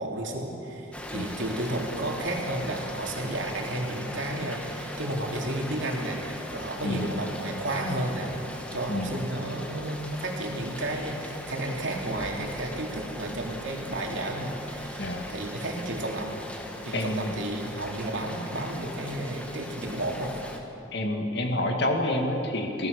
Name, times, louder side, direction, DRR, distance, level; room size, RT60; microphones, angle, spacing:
voice 1, 0.0-8.3 8.7-16.3 16.8-20.4, right 1 dB, 65° right, 0 dB, 3.3 m, -32 dB
Rain, 0.9-20.6, equal, 5° left, 1.6 m, -39 dB
voice 2, 16.9-17.4 20.9-22.9, left 1 dB, 55° left, 3 dB, 2.2 m, -28 dB
26.0 x 18.0 x 6.9 m, 2.9 s
head